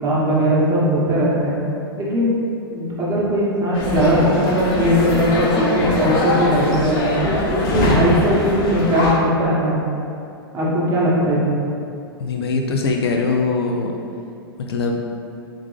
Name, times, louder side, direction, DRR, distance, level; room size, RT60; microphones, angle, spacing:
voice 1, 0.0-1.6 2.0-2.4 2.7-9.8 10.5-11.6, equal, 25° right, -7 dB, 1.2 m, -19 dB
sound 1, 3.7-9.1, left 2 dB, 40° left, 0.7 m, -22 dB
voice 2, 12.2-13.9 14.6-15.0, left 4 dB, 80° left, 2 dB, 0.4 m, -21 dB
3.7 x 3.5 x 3.2 m, 2.5 s
hypercardioid pair, 115°, 13 cm